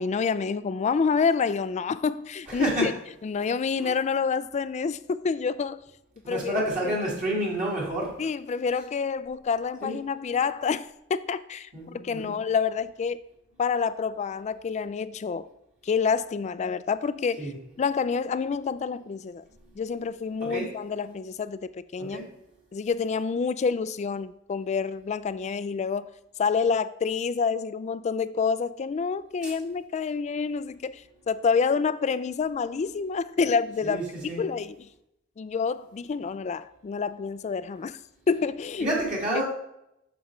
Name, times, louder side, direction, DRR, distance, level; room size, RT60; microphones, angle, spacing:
voice 1, 0.0-2.9 3.2-5.8 6.3-6.5 6.8-7.0 8.2-13.2 13.6-15.5 15.8-17.5 17.8-19.4 19.8-22.2 22.7-26.1 26.4-34.0 34.4-34.9 35.4-38.0 38.3-38.9, left 5 dB, 35° left, 0.3 m, -28 dB
voice 2, 2.5-2.9 3.8-3.9 6.2-8.1 9.8-10.0 11.7-12.3 17.4-17.6 20.4-20.7 22.0-22.3 29.4-29.5 33.8-34.4 38.8-39.4, right 1 dB, 40° right, 2.0 m, -29 dB
8.0 x 6.0 x 3.1 m
head